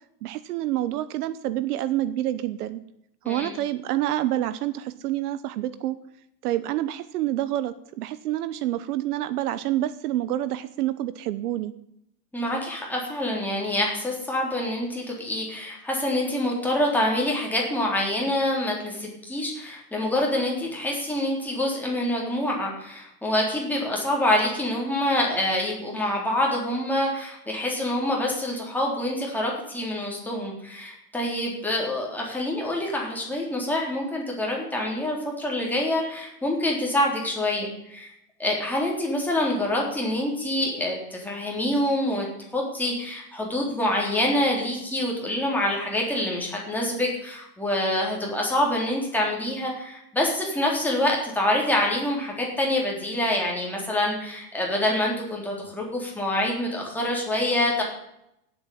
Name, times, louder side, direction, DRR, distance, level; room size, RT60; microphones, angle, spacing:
voice 1, 0.2-2.8 3.3-6.0 6.4-11.7, right 13 dB, 65° right, 15 dB, 1.0 m, -27 dB
voice 2, 12.3-38.1 38.4-42.3 42.5-57.8, left 1 dB, 5° left, -2 dB, 3.6 m, -26 dB
17.0 x 8.1 x 7.1 m, 0.80 s
supercardioid pair, 160°, 49 cm